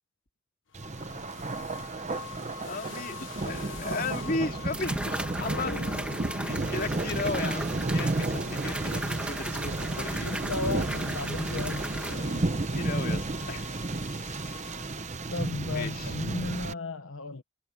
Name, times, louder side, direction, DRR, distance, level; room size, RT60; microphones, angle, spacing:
sound 1, 0.7-15.5, left 5 dB, 65° left, 1.0 m, -44 dB
Thunder, 0.7-16.7, right 2 dB, 35° right, 0.8 m, -32 dB
voice 1, 2.6-5.8 6.4-10.3 12.7-13.7 15.7-16.1, left 3 dB, 45° left, 2.5 m, -35 dB
sound 2, 3.7-3.8 4.7-12.1, right 1 dB, 5° right, 2.0 m, -37 dB
voice 2, 10.2-11.9 15.3-17.4, left 3 dB, 90° left, 1.1 m, -35 dB
head